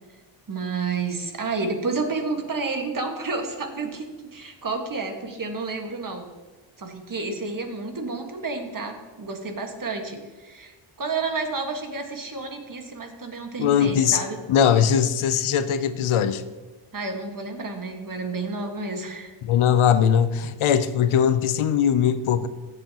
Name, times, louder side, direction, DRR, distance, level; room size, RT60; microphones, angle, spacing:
voice 1, 0.5-6.3 6.8-14.4 16.9-19.3, right 3 dB, 40° right, 4 dB, 1.7 m, -30 dB
voice 2, 13.6-14.2 14.5-16.4 19.4-22.5, left 8 dB, 75° left, 12 dB, 0.7 m, -20 dB
15.5 x 7.8 x 2.9 m, 1.3 s
cardioid pair, 80°, 49 cm